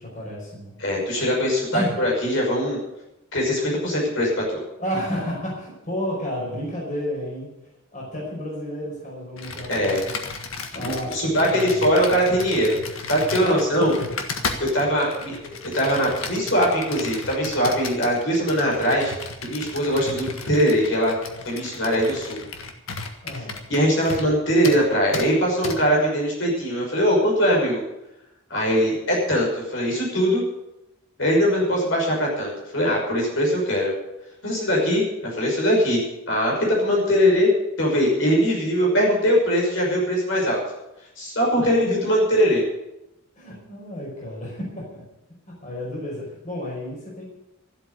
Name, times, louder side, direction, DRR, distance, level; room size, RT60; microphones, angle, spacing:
voice 1, 0.0-0.8 1.7-1.9 4.8-7.5 7.9-10.1 10.7-11.9 13.4-14.0 23.2-23.6 41.6-41.7 43.4-45.0 45.5-47.3, equal, 40° left, -4 dB, 5.3 m, -31 dB
voice 2, 0.8-2.8 3.3-4.6 9.7-10.0 10.7-12.8 13.1-13.9 14.6-15.3 15.6-19.1 19.4-21.2 21.5-22.4 23.7-27.8 28.5-30.4 31.2-33.9 34.4-36.0 36.3-37.5 37.8-40.6 41.2-42.6, equal, 65° left, -3 dB, 5.9 m, -21 dB
Computer keyboard, 9.4-24.4 24.6-24.8 25.1-25.3 25.6-25.8, left 4 dB, 85° left, 1.7 m, -34 dB
14.0 x 8.1 x 9.6 m, 0.91 s
head